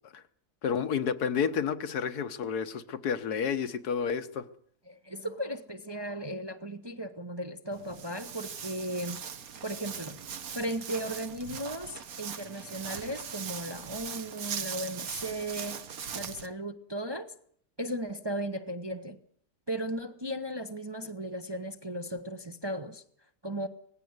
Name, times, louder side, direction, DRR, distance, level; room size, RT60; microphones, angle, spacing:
voice 1, 0.6-4.4, left 7 dB, 75° left, 10 dB, 1.6 m, -30 dB
voice 2, 4.9-9.2 9.6-10.2 10.5-15.8 16.1-17.3 17.8-19.2 19.7-23.0 23.4-23.7, right 1 dB, 20° right, 6 dB, 0.8 m, -36 dB
Walk footsteps, 7.7-16.5, right 7 dB, 65° right, 1.6 m, -40 dB
19.0 x 16.0 x 9.5 m, 0.63 s
omnidirectional pair, 1.7 m